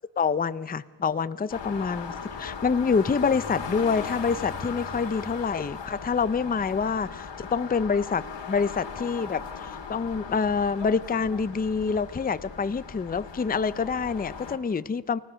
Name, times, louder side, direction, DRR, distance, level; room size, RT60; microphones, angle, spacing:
voice 1, 0.2-15.2, left 5 dB, 20° left, 15 dB, 0.5 m, -27 dB
sound 1, 1.5-14.6, left 5 dB, 80° left, 2.2 m, -38 dB
29.5 x 17.0 x 6.3 m, 1.5 s
wide cardioid pair, 115°, 43 cm